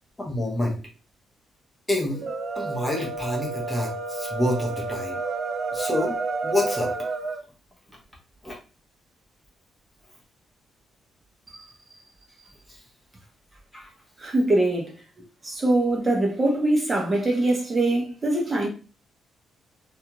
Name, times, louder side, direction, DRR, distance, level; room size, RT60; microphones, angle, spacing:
voice 1, 0.2-0.7 1.9-2.2 2.6-5.2 5.7-6.1 6.4-6.9 8.4-8.6 13.7-13.9, left 1 dB, 10° left, 0.8 m, -27 dB
sound 1, 2.1-7.4, right 3 dB, 45° right, 0.4 m, -30 dB
voice 2, 14.2-14.9 15.4-18.7, right 2 dB, 20° right, 0.8 m, -23 dB
2.4 x 2.4 x 2.9 m
cardioid pair, 140°, 0 cm